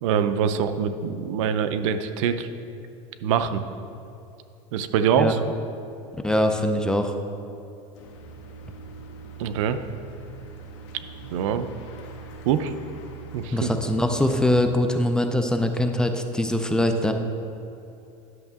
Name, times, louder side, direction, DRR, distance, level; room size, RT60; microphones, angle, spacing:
voice 1, 0.0-2.5 3.2-3.6 4.7-5.4 9.4-9.8 11.2-11.7 12.5-12.7 13.3-13.7, right 8 dB, 85° right, 10 dB, 0.6 m, -24 dB
voice 2, 6.2-7.2 13.5-17.1, left 1 dB, 5° left, 5 dB, 0.4 m, -22 dB
sound 1, 7.9-14.7, right 4 dB, 70° left, 1.3 m, -42 dB
11.0 x 6.4 x 3.6 m, 2.8 s
supercardioid pair, 150°, 16 cm